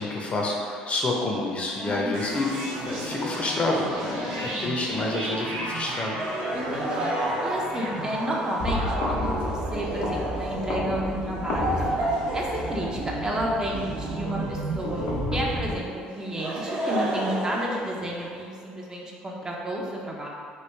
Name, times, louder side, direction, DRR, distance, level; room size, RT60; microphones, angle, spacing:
voice 1, 0.0-6.2, left 2 dB, 35° left, -1 dB, 0.6 m, -28 dB
voice 2, 1.8-2.4 4.2-4.7 6.5-7.1 7.4-12.0 12.3-20.3, equal, 20° right, -2 dB, 0.6 m, -32 dB
sound 1, 2.1-15.7, right 2 dB, 85° right, 0.6 m, -34 dB
Laughter, 6.2-15.2 16.1-18.4, right 1 dB, 50° right, 0.8 m, -32 dB
sound 2, 8.6-15.8, left 1 dB, 75° left, 0.6 m, -32 dB
3.2 x 2.2 x 3.3 m, 2.1 s
supercardioid pair, 70°, 3 cm